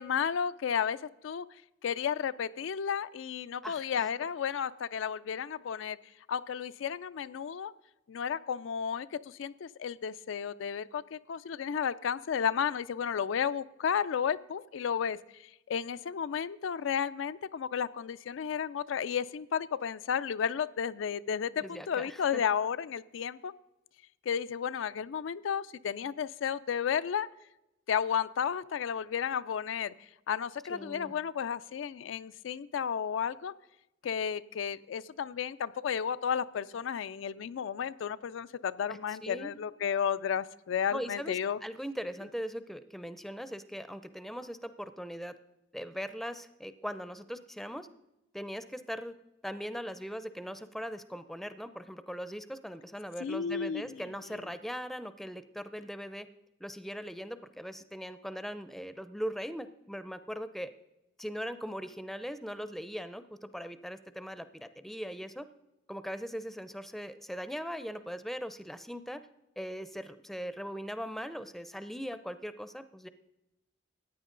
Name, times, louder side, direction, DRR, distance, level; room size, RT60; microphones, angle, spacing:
voice 1, 0.0-1.5 1.8-6.0 6.3-7.7 8.1-15.2 15.7-23.5 24.3-27.3 27.9-29.9 30.3-33.5 34.0-41.6 53.2-54.0, left 7 dB, 90° left, 14 dB, 0.4 m, -33 dB
voice 2, 3.6-4.1 21.6-22.4 30.7-31.1 38.9-39.6 40.9-45.4 45.7-47.9 48.3-49.1 49.4-56.3 56.6-60.7 61.2-65.5 65.9-69.3 69.6-73.1, equal, ahead, 12 dB, 0.5 m, -40 dB
14.5 x 9.3 x 3.8 m, 0.92 s
head